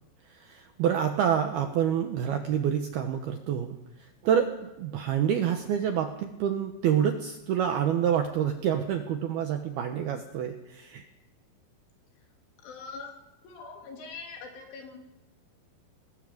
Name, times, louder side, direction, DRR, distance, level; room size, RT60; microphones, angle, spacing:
voice 1, 0.3-11.1, right 9 dB, 75° right, 6 dB, 2.4 m, -27 dB
voice 2, 12.6-13.1 13.4-15.0, left 4 dB, 70° left, 2 dB, 5.5 m, -42 dB
20.5 x 19.5 x 7.9 m, 0.95 s
omnidirectional pair, 5.9 m